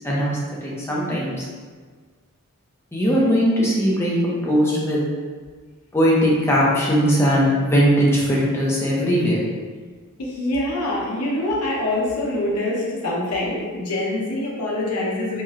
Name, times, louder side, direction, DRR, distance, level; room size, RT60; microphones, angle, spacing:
voice 1, 0.0-1.5 2.9-4.1 4.4-5.0 5.9-9.4, equal, 10° left, -5 dB, 0.5 m, -19 dB
voice 2, 10.2-15.4, left 1 dB, 90° left, -4 dB, 0.8 m, -25 dB
3.0 x 2.1 x 3.6 m, 1.5 s
head